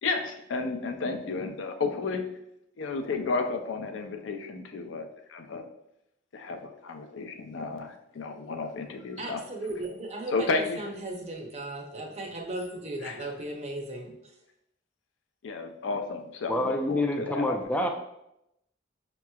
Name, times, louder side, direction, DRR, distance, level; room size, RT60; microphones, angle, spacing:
voice 1, 0.0-2.2 2.8-5.6 6.3-9.4 10.3-10.9 13.0-13.3 15.4-17.9, left 3 dB, 80° left, 5 dB, 0.4 m, -32 dB
voice 2, 9.2-14.1, right 2 dB, 35° right, 1 dB, 0.6 m, -36 dB
voice 3, 16.5-17.9, left 1 dB, 5° left, 3 dB, 0.4 m, -27 dB
5.7 x 3.0 x 2.2 m, 0.83 s
head